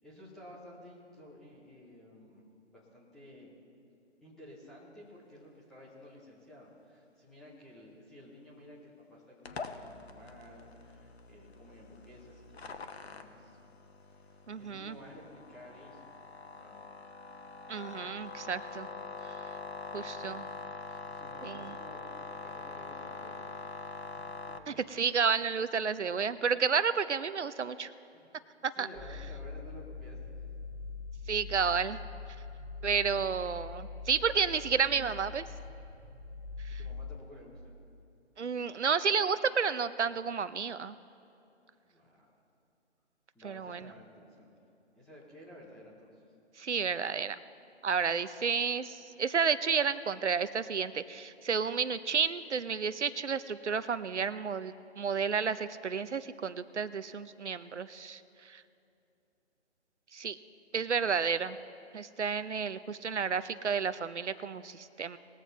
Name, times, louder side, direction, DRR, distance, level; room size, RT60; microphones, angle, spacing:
voice 1, 0.0-3.5 4.2-13.6 14.0-16.8 21.0-23.6 24.5-24.8 28.1-28.3 28.7-30.3 36.7-37.7 41.8-42.2 43.3-44.5 44.9-46.2 48.0-48.2 60.8-61.0, left 1 dB, ahead, -7 dB, 0.7 m, -53 dB
sound 1, 9.5-24.6, left 4 dB, 65° left, 1.1 m, -44 dB
voice 2, 14.5-14.9 17.7-18.9 19.2-19.3 19.9-20.5 21.4-21.7 24.7-27.9 28.6-28.9 31.3-32.0 32.8-35.4 36.6-36.8 38.4-40.9 43.4-43.9 46.6-47.4 47.8-58.6 60.1-60.4 60.7-61.6 61.9-65.2, right 6 dB, 80° right, 14 dB, 0.7 m, -31 dB
sound 2, 28.9-37.1, left 4 dB, 30° right, 0.9 m, -43 dB
20.5 x 7.4 x 4.0 m, 2.8 s
figure-of-eight pair, 150°, 34 cm